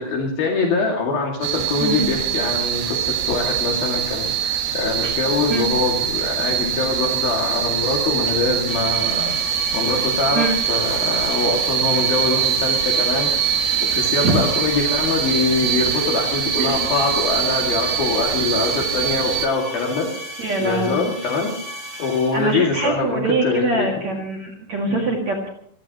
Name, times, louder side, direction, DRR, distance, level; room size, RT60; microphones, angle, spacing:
voice 1, 0.0-9.4 9.7-13.3 13.8-20.1 20.6-21.5 22.0-23.9 24.9-25.1, left 4 dB, 55° left, -1 dB, 3.7 m, -23 dB
sound 1, 1.4-19.5, right 9 dB, 70° right, 3.0 m, -23 dB
sound 2, 8.7-22.8, equal, 25° right, 8.4 m, -35 dB
voice 2, 20.4-21.0 22.3-25.5, right 3 dB, 45° right, 2 dB, 2.8 m, -23 dB
28.5 x 16.5 x 3.0 m, 0.62 s
omnidirectional pair, 5.4 m